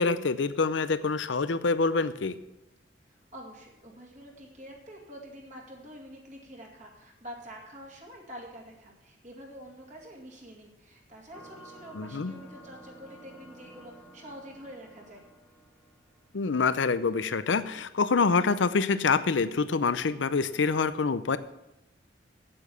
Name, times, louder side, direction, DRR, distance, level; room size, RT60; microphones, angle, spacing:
voice 1, 0.0-2.4 11.9-12.3 16.3-21.4, left 4 dB, 80° left, 14 dB, 0.6 m, -26 dB
voice 2, 3.1-15.2, equal, 40° right, -1 dB, 2.3 m, -47 dB
sound 1, 11.3-16.6, right 1 dB, 5° right, 1.8 m, -52 dB
8.6 x 8.6 x 7.0 m, 0.94 s
head